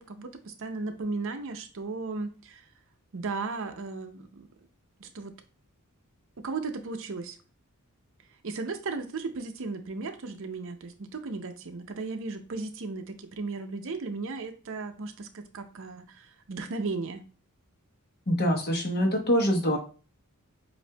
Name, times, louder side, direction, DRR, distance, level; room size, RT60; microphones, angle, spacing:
voice 1, 0.0-2.6 3.1-4.5 5.0-5.3 6.4-7.4 8.4-17.2, right 3 dB, 60° right, 7 dB, 0.6 m, -35 dB
voice 2, 18.3-19.8, equal, 45° left, 2 dB, 1.0 m, -24 dB
7.5 x 2.6 x 2.3 m, 0.36 s
head